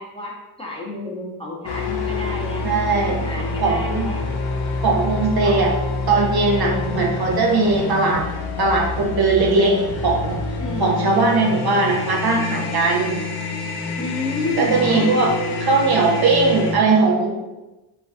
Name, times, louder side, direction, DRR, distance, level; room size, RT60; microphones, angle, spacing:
voice 1, 0.0-2.7 3.0-4.2 5.4-5.5 6.4-6.9 7.5-7.9 10.6-11.0 14.0-15.1, left 2 dB, 10° left, -4 dB, 0.9 m, -30 dB
sound 1, 1.6-16.7, left 3 dB, 80° left, 0.6 m, -27 dB
voice 2, 2.6-3.2 3.6-4.1 4.8-5.7 6.1-8.3 8.6-10.4 10.8-13.2 14.6-15.3 15.6-17.3, right 3 dB, 50° right, 0 dB, 0.6 m, -19 dB
3.1 x 2.4 x 2.5 m, 1.0 s
supercardioid pair, 50°, 49 cm